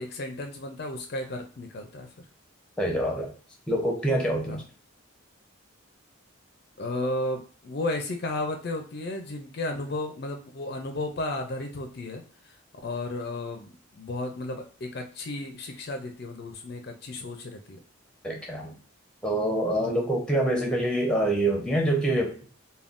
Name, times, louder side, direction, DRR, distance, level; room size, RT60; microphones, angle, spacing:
voice 1, 0.0-2.1 4.5-4.6 6.8-12.5 12.8-17.8 19.8-20.0, left 2 dB, 50° left, 5 dB, 0.4 m, -34 dB
voice 2, 2.8-3.3 3.7-4.6 18.2-18.8 19.2-22.4, right 1 dB, 5° left, 1 dB, 0.6 m, -25 dB
3.5 x 2.2 x 2.4 m, 0.41 s
head